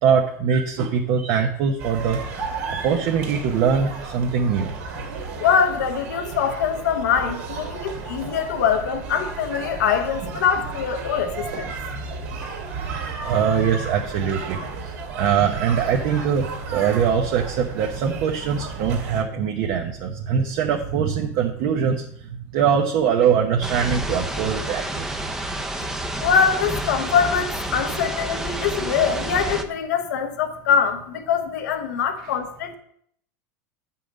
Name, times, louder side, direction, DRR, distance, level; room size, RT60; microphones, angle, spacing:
voice 1, 0.0-2.2 2.7-4.7 11.9-12.0 12.7-25.1, right 7 dB, 55° right, 1 dB, 0.9 m, -22 dB
sound 1, 1.8-19.2, right 4 dB, 80° right, 2.3 m, -33 dB
voice 2, 5.4-11.7 26.2-32.8, left 7 dB, 90° left, 6 dB, 1.1 m, -23 dB
sound 2, 23.6-29.6, right 1 dB, 5° right, 0.7 m, -29 dB
8.6 x 5.8 x 5.3 m, 0.68 s
supercardioid pair, 125°, 9 cm